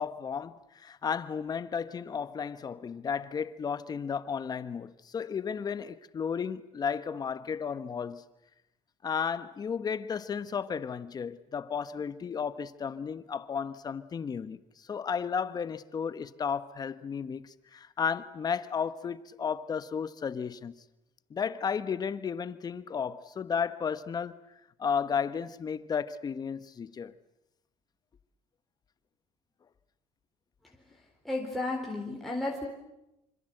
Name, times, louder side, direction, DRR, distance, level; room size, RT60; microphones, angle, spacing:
voice 1, 0.0-8.2 9.0-20.8 21.3-24.4 24.8-27.1, left 6 dB, 30° left, 1.2 m, -33 dB
voice 2, 31.2-32.7, left 2 dB, ahead, 4.0 m, -33 dB
26.0 x 26.0 x 7.9 m
cardioid pair, 125°, 13 cm